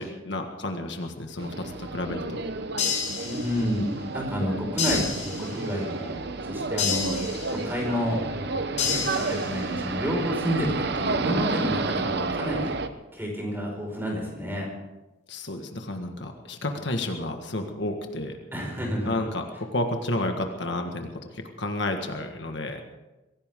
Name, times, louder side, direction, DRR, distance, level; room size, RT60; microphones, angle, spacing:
voice 1, 0.0-2.4 15.3-18.3 19.0-22.8, left 1 dB, 65° left, 4 dB, 1.6 m, -31 dB
sound 1, 1.4-12.9, right 3 dB, 60° right, 1.0 m, -31 dB
sound 2, 2.8-3.8 4.8-5.8 6.8-7.8 8.8-9.8, left 6 dB, 40° left, 3.8 m, -30 dB
voice 2, 3.2-6.1 6.5-7.2 7.5-8.2 8.8-12.7 13.1-14.7 18.5-19.2, equal, 10° right, 0 dB, 5.3 m, -30 dB
23.5 x 16.5 x 3.7 m, 1.0 s
head